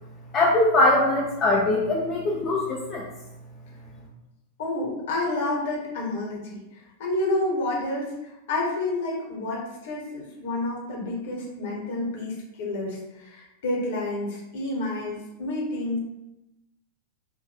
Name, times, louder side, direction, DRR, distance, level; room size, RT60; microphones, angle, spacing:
voice 1, 0.3-3.1, left 2 dB, 25° left, -4 dB, 0.7 m, -22 dB
voice 2, 4.6-16.0, left 2 dB, 55° left, -2 dB, 1.4 m, -29 dB
4.9 x 2.6 x 3.4 m, 0.91 s
figure-of-eight pair, 90°, 0 cm